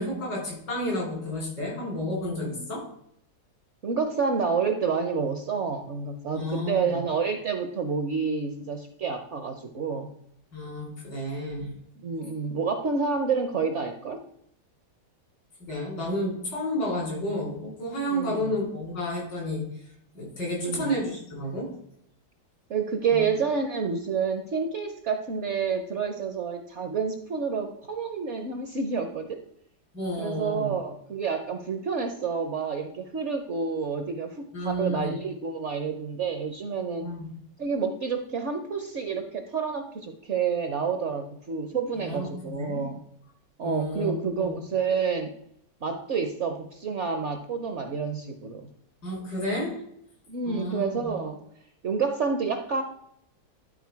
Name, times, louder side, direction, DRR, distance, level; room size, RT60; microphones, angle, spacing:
voice 1, 0.0-2.8 6.3-7.0 10.5-11.8 15.6-19.6 20.1-21.7 23.1-23.2 29.9-30.7 34.5-35.2 37.0-37.2 42.1-42.8 43.6-44.6 49.0-49.8 50.5-51.1, equal, 90° left, -2 dB, 4.3 m, -31 dB
voice 2, 3.8-10.1 12.0-14.2 18.1-18.5 20.6-20.9 22.7-29.4 30.2-37.1 37.6-43.0 43.6-45.3 45.8-48.7 50.3-51.4 51.8-52.8, right 5 dB, 60° right, 7 dB, 0.8 m, -29 dB
11.5 x 4.3 x 4.6 m, 0.72 s
omnidirectional pair, 1.9 m